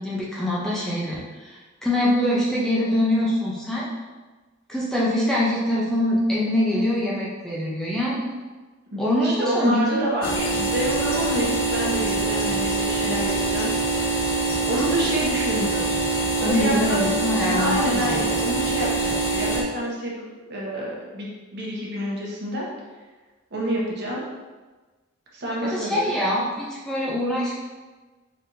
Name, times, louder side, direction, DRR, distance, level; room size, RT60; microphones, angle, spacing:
voice 1, 0.0-3.8 4.7-8.3 9.0-10.0 16.4-18.3 25.6-27.6, left 1 dB, 5° left, -7 dB, 0.6 m, -24 dB
voice 2, 8.9-13.7 14.0-14.4 14.7-15.9 16.4-17.0 17.5-22.7 23.5-24.2 25.3-26.1, right 1 dB, 55° right, -4 dB, 1.0 m, -28 dB
sound 1, 10.2-19.6, right 3 dB, 85° left, 0.7 m, -24 dB
4.3 x 3.3 x 2.6 m, 1.3 s
head